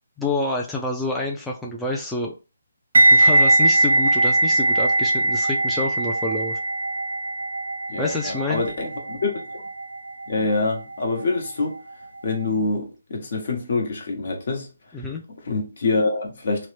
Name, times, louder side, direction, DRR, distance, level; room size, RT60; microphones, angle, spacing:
voice 1, 0.2-2.3 3.1-6.6 8.0-8.6 14.9-15.2, left 2 dB, 5° left, 0.3 m, -27 dB
sound 1, 2.9-11.9 12.2-12.5, right 2 dB, 85° right, 0.4 m, -21 dB
voice 2, 7.9-9.6 10.3-11.8 12.2-14.7 15.3-16.7, left 3 dB, 60° left, 1.0 m, -26 dB
3.0 x 2.1 x 3.1 m
hypercardioid pair, 160°, 0 cm